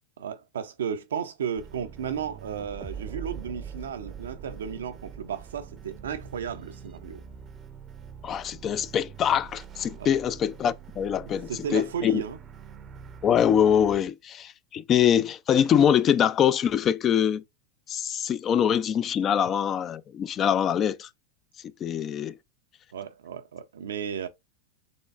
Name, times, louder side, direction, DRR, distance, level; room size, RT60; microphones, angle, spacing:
voice 1, 0.2-7.2 10.0-10.1 11.5-12.4 22.9-24.3, right 7 dB, 80° right, 0.5 m, -34 dB
sound 1, 1.6-14.0, right 7 dB, 30° right, 0.6 m, -44 dB
voice 2, 8.2-12.2 13.2-17.4 17.9-21.1 21.8-22.3, left 9 dB, 35° left, 0.4 m, -24 dB
4.2 x 3.0 x 2.4 m
hypercardioid pair, 95°, 0 cm